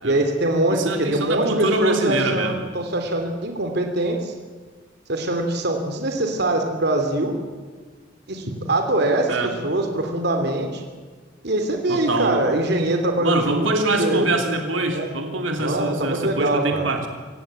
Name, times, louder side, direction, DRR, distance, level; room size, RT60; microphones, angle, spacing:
voice 1, 0.0-4.3 5.1-7.4 8.3-10.8 11.4-14.3 14.9-15.2 15.6-16.9, right 1 dB, 60° right, 4 dB, 2.9 m, -23 dB
voice 2, 0.7-2.6 9.3-9.5 11.9-12.4 13.2-17.1, right 2 dB, 80° right, 4 dB, 3.0 m, -24 dB
25.5 x 16.5 x 9.0 m, 1.5 s
head